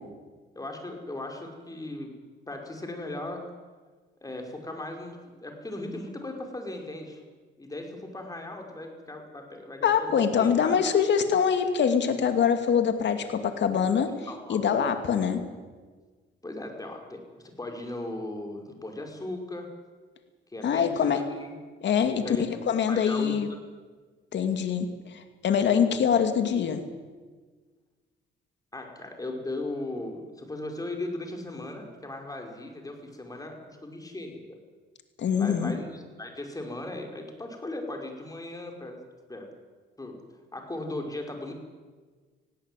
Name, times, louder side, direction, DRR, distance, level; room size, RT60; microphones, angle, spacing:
voice 1, 0.5-2.1 2.5-3.5 4.2-7.2 7.6-10.7 14.2-14.7 16.4-19.7 20.5-21.5 22.2-22.6 22.9-23.4 28.7-34.6 35.4-39.0 39.3-39.5 40.0-40.2 40.5-41.5, left 2 dB, 20° left, 3 dB, 5.1 m, -37 dB
voice 2, 9.8-14.1 14.5-15.4 20.6-21.2 21.8-23.5 24.3-26.8 35.2-35.7, left 7 dB, 65° left, 7 dB, 2.6 m, -24 dB
19.0 x 17.0 x 9.2 m, 1.4 s
cardioid pair, 90°, 20 cm